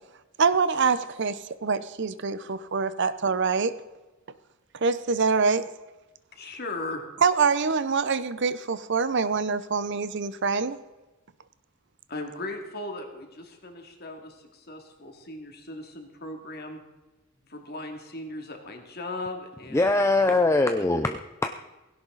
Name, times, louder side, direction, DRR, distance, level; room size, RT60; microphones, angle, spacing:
voice 1, 0.4-3.7 4.8-5.7 7.2-10.8, right 5 dB, 55° right, 14 dB, 0.7 m, -25 dB
voice 2, 6.3-7.0 12.1-16.8 17.5-20.4 20.8-20.9, left 2 dB, 45° left, 3 dB, 2.5 m, -38 dB
voice 3, 19.7-21.7, left 2 dB, 15° left, 7 dB, 0.5 m, -23 dB
16.5 x 16.5 x 4.0 m, 1.1 s
head